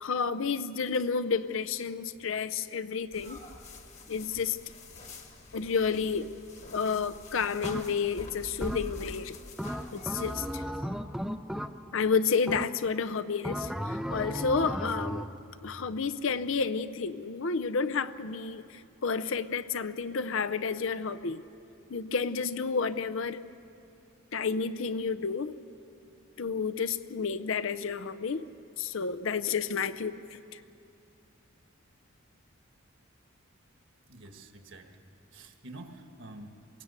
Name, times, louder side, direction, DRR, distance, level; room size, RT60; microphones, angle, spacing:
voice 1, 0.0-3.4 4.1-4.6 5.5-6.3 6.7-9.4 9.9-10.6 11.9-15.3 15.6-21.4 21.9-23.4 24.3-25.5 26.4-28.4 28.8-30.2 30.5-30.6, left 5 dB, 65° left, 13 dB, 0.6 m, -30 dB
sound 1, 3.1-10.6, left 1 dB, 30° left, 1.3 m, -46 dB
sound 2, 7.6-8.2 8.6-9.1 9.6-12.1 12.5-13.0 13.4-15.4, equal, ahead, 0.5 m, -35 dB
voice 2, 34.1-34.9 35.3-36.5, right 2 dB, 55° right, 5 dB, 1.6 m, -47 dB
22.0 x 17.5 x 8.2 m, 2.7 s
head